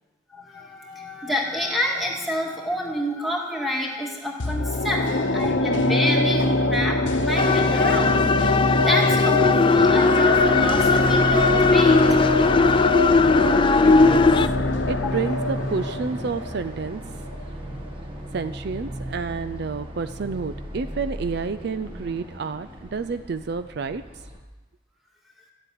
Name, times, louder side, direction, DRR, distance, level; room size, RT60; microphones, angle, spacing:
voice 1, 0.3-12.2 14.1-14.2 15.1-15.3, equal, ahead, -1 dB, 2.1 m, -28 dB
sound 1, 4.4-17.5 17.8-17.9, left 2 dB, 65° left, 0.9 m, -23 dB
sound 2, 7.4-14.5, left 3 dB, 25° left, 0.4 m, -19 dB
sound 3, 10.6-24.4, equal, 25° right, 1.7 m, -35 dB
voice 2, 13.8-14.3 14.9-17.0 18.3-24.2, right 4 dB, 55° right, 10 dB, 0.4 m, -30 dB
13.5 x 7.9 x 9.4 m, 1.1 s
head